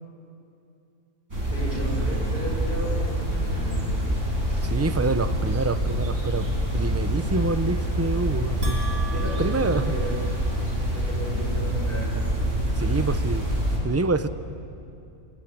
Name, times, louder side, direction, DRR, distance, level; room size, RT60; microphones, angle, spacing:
sound 1, 1.3-13.8, equal, 65° right, 6.5 m, -26 dB
voice 1, 1.5-3.8 9.1-10.2 10.8-12.2, right 1 dB, 40° left, -3 dB, 7.8 m, -33 dB
voice 2, 4.6-6.5 6.7-8.8 9.1-9.9 12.8-14.3, right 3 dB, 15° right, 11 dB, 0.5 m, -27 dB
Bell, 8.6-10.8, right 4 dB, 45° right, 2.6 m, -39 dB
28.5 x 23.5 x 8.7 m, 2.6 s
omnidirectional pair, 1.4 m